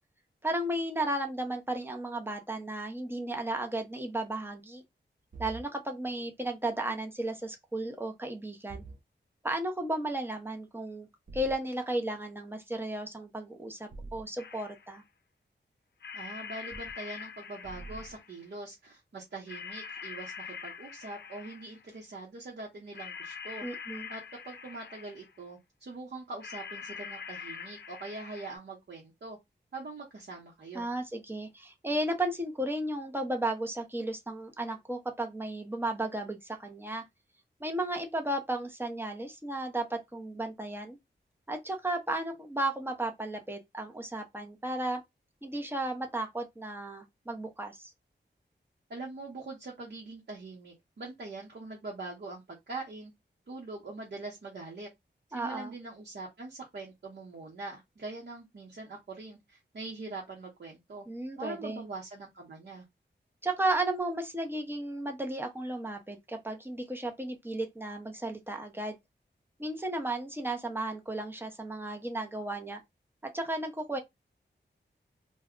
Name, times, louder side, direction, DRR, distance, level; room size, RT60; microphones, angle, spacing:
voice 1, 0.4-4.8 5.4-8.8 9.4-11.1 11.3-15.0 23.6-24.1 30.7-37.0 37.6-41.0 41.5-45.0 45.4-47.9 55.3-55.7 61.1-61.8 63.4-68.9 69.6-72.8 73.2-74.0, right 1 dB, 10° right, 0.7 m, -34 dB
sound 1, 5.3-5.6 8.7-9.0 11.3-11.6 13.9-14.2 16.7-16.9 17.6-18.2, right 3 dB, 45° right, 0.5 m, -44 dB
sound 2, 14.4-15.0 16.0-18.4 19.5-21.9 22.9-25.4 26.4-28.6, left 6 dB, 65° left, 0.5 m, -44 dB
voice 2, 16.1-23.6 24.1-29.4 29.7-30.9 48.9-53.1 53.5-54.9 55.3-61.1 61.4-62.8, right 3 dB, 60° right, 0.9 m, -43 dB
2.2 x 2.2 x 3.6 m
wide cardioid pair, 105°, 19 cm